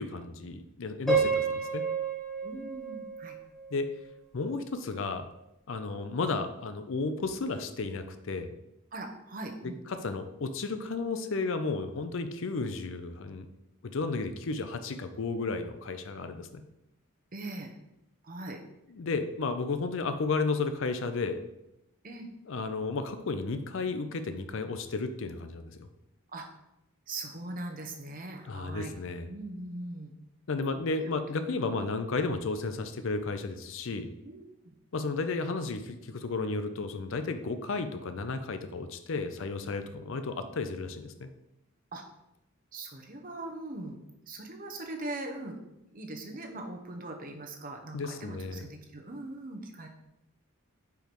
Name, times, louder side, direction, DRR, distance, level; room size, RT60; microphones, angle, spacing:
voice 1, 0.0-1.8 3.7-3.9 4.3-5.3 5.7-8.5 9.9-13.5 13.8-16.6 18.9-21.4 22.5-25.9 28.5-29.3 30.5-34.1 34.9-41.3 47.9-48.7, left 3 dB, 60° left, 9 dB, 0.5 m, -33 dB
Piano, 1.1-4.1, right 5 dB, ahead, 1.4 m, -30 dB
voice 2, 2.4-3.4 8.9-9.8 17.3-17.7 18.2-18.6 22.0-22.3 26.3-26.5 27.1-28.9 29.3-30.1 30.9-31.1 34.2-34.7 41.9-42.0 42.7-45.6 45.9-49.9, right 2 dB, 40° right, 3 dB, 0.8 m, -41 dB
4.6 x 4.5 x 5.2 m, 0.88 s
head